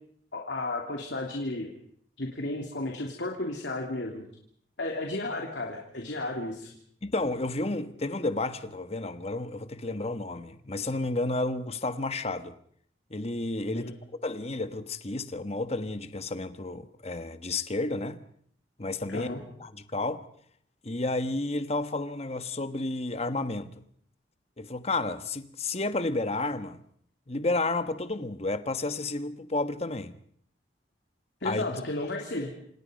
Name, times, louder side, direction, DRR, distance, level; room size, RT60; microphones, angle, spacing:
voice 1, 0.3-1.7 2.2-4.2 4.8-6.7 13.7-13.9 19.1-19.4 31.4-32.5, left 2 dB, 75° left, 3.2 m, -33 dB
voice 2, 7.0-12.6 13.1-13.9 14.2-18.2 18.8-19.3 19.6-20.2 20.8-23.9 24.6-26.8 27.3-30.2 31.4-31.8, left 2 dB, 35° left, 1.3 m, -31 dB
28.0 x 27.5 x 5.3 m
head